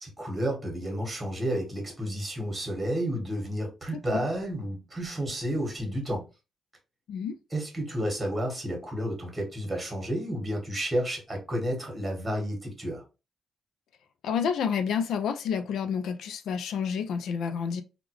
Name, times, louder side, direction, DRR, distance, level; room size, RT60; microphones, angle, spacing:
voice 1, 0.0-6.2 7.5-13.0, equal, 15° right, 1.5 m, -31 dB
voice 2, 3.9-4.3 7.1-7.4 14.2-17.8, left 7 dB, 80° left, 0.4 m, -29 dB
3.5 x 2.4 x 3.0 m
cardioid pair, 110°, 0 cm